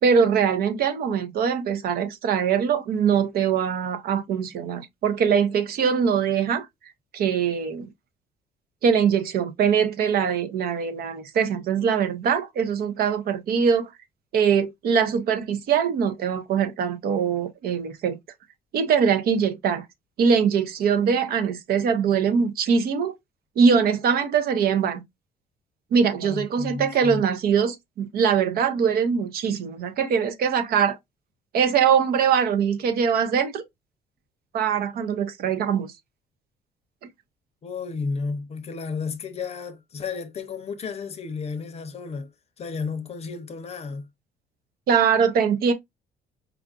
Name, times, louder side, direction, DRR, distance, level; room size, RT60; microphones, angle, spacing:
voice 1, 0.0-6.7 7.1-7.9 8.8-13.9 14.3-18.2 18.7-19.8 20.2-23.1 23.6-25.0 25.9-31.0 31.5-33.6 34.5-35.9 44.9-45.7, right 7 dB, 65° right, 0.8 m, -22 dB
voice 2, 26.2-27.2 37.6-42.3 42.6-44.1, left 4 dB, 40° left, 0.6 m, -32 dB
4.8 x 2.4 x 2.3 m
cardioid pair, 110°, 17 cm